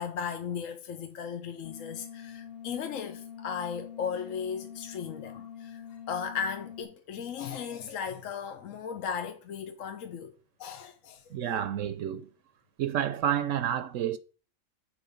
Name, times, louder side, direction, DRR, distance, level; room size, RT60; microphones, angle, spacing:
voice 1, 0.0-10.3 10.6-11.4, left 7 dB, 70° left, 1.1 m, -36 dB
sound 1, 1.6-6.8, left 8 dB, 45° left, 1.4 m, -45 dB
voice 2, 11.3-12.3 12.8-14.2, right 10 dB, 70° right, 0.9 m, -29 dB
7.9 x 5.0 x 5.1 m
omnidirectional pair, 1.4 m